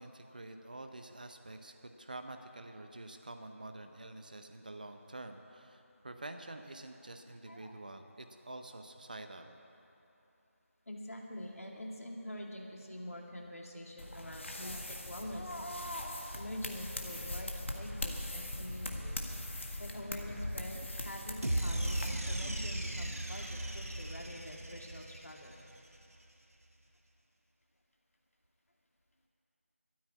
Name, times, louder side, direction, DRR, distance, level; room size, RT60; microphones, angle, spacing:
voice 1, 0.0-9.5, right 2 dB, 35° right, 6 dB, 0.7 m, -48 dB
voice 2, 10.9-19.2 19.8-25.6, left 1 dB, 70° left, 0 dB, 2.2 m, -45 dB
sound 1, 14.0-22.1, left 1 dB, 55° left, 1.6 m, -41 dB
sound 2, 21.4-25.8, right 1 dB, 75° right, 1.6 m, -36 dB
13.0 x 9.4 x 9.5 m, 3.0 s
figure-of-eight pair, 175°, 8 cm